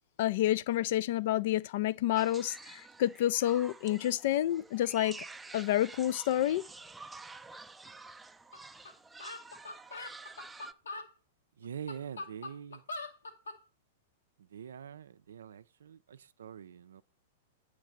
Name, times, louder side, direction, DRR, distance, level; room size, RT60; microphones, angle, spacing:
voice 1, 0.2-5.2 5.5-6.6, left 13 dB, 55° left, 0.3 m, -29 dB
sound 1, 2.1-10.7, right 3 dB, 10° right, 0.5 m, -49 dB
sound 2, 8.5-8.6 8.9-9.0 9.2-11.1 11.6-13.6, left 2 dB, 85° left, 1.2 m, -42 dB
voice 2, 11.6-12.8 14.4-17.0, right 8 dB, 75° right, 0.4 m, -45 dB
9.0 x 3.3 x 6.4 m
hypercardioid pair, 105°, 0 cm